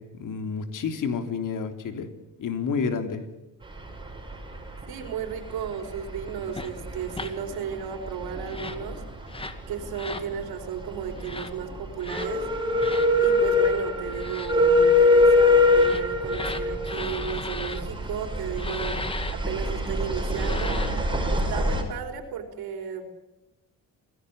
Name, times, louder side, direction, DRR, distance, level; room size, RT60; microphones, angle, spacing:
voice 1, 0.0-2.1 2.4-3.2, left 5 dB, 60° left, 7 dB, 3.5 m, -29 dB
sound 1, 3.6-21.8, left 2 dB, 15° right, 5.6 m, -25 dB
voice 2, 4.9-9.0 9.7-12.5 13.2-19.0 19.3-20.8 21.3-23.0, right 7 dB, 85° right, 6 dB, 4.3 m, -34 dB
sound 2, 6.5-6.7 7.1-7.3 8.4-8.8 9.3-9.6 9.9-10.3 11.2-11.5 12.0-12.3 12.8-13.1 14.1-14.5 15.6-17.8 18.5-19.3 20.2-21.0, left 3 dB, 15° left, 1.9 m, -36 dB
27.0 x 17.5 x 8.3 m, 0.97 s
cardioid pair, 140°, 36 cm